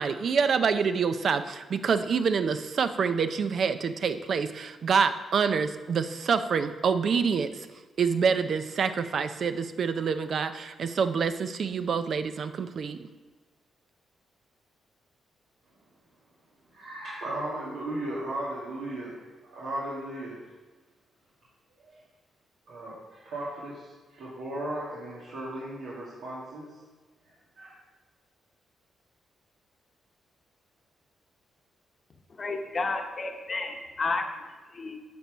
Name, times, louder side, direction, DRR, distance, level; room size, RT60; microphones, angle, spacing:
voice 1, 0.0-7.7 8.0-13.1, right 6 dB, 60° right, 10 dB, 0.5 m, -27 dB
voice 2, 16.7-19.1 19.4-20.4 21.8-22.0 22.7-26.7 27.2-27.7, right 1 dB, 85° right, -8 dB, 2.0 m, -36 dB
voice 3, 32.4-34.2 34.7-35.0, left 3 dB, 40° left, 4 dB, 1.0 m, -31 dB
8.4 x 4.6 x 6.2 m, 1.3 s
cardioid pair, 80°, 0 cm